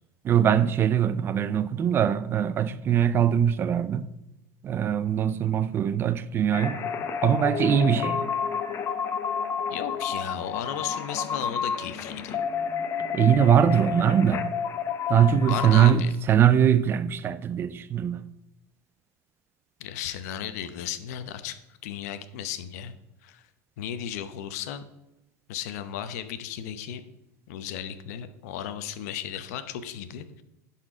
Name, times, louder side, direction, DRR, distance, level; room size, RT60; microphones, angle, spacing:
voice 1, 0.2-4.0 4.6-6.9 7.2-8.2 13.1-14.5 15.1-18.2, right 9 dB, 25° right, 0.4 m, -22 dB
sound 1, 6.5-15.9, left 7 dB, 30° left, 0.8 m, -30 dB
voice 2, 9.7-12.4 15.5-16.1 19.8-22.9 23.2-23.5 23.8-24.9 25.5-27.0 27.5-30.4, left 10 dB, 75° left, 0.8 m, -35 dB
11.0 x 4.4 x 4.9 m
supercardioid pair, 140°, 9 cm